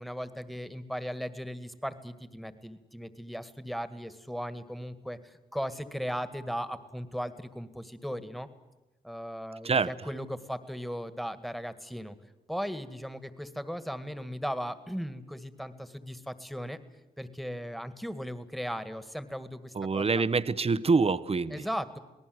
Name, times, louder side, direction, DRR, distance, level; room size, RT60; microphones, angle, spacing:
voice 1, 0.0-8.5 9.0-12.2 12.5-16.8 17.2-20.2 21.5-22.0, equal, ahead, 11 dB, 2.0 m, -37 dB
voice 2, 19.8-21.6, right 4 dB, 35° right, 14 dB, 0.9 m, -26 dB
27.5 x 18.5 x 8.0 m, 1.0 s
cardioid pair, 50°, 17 cm